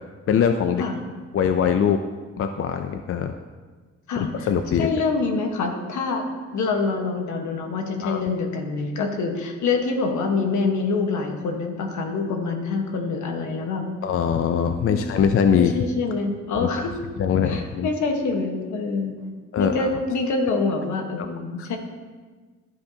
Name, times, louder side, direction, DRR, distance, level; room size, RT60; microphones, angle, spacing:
voice 1, 0.3-0.8 1.3-2.0 2.4-3.3 4.5-4.9 8.0-8.2 14.0-15.7 16.6-16.7 17.2-17.9 19.5-19.9 21.6-21.7, left 7 dB, 50° left, 7 dB, 0.5 m, -22 dB
voice 2, 4.1-4.5 4.8-6.2 6.5-13.9 14.9-15.1 15.5-16.9 17.4-19.1 19.6-21.8, left 4 dB, 75° left, 3 dB, 1.3 m, -25 dB
13.5 x 5.2 x 2.8 m, 1.4 s
cardioid pair, 90°, 30 cm